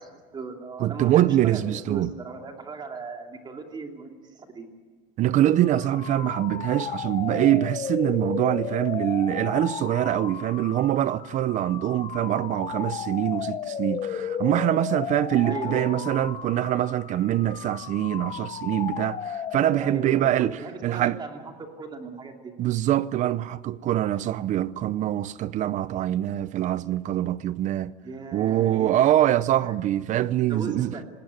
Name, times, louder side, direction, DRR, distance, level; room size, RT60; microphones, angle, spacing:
voice 1, 0.0-4.7 15.4-16.1 19.8-21.5 21.8-22.5 28.0-29.8 30.5-31.0, right 4 dB, 25° right, 2.8 m, -37 dB
voice 2, 0.8-2.1 5.2-20.6 20.8-21.2 22.6-27.9 28.3-30.9, right 12 dB, 40° right, 0.6 m, -24 dB
sound 1, 5.5-20.2, left 8 dB, 30° left, 1.0 m, -34 dB
19.5 x 18.5 x 9.3 m
cardioid pair, 145°, 20 cm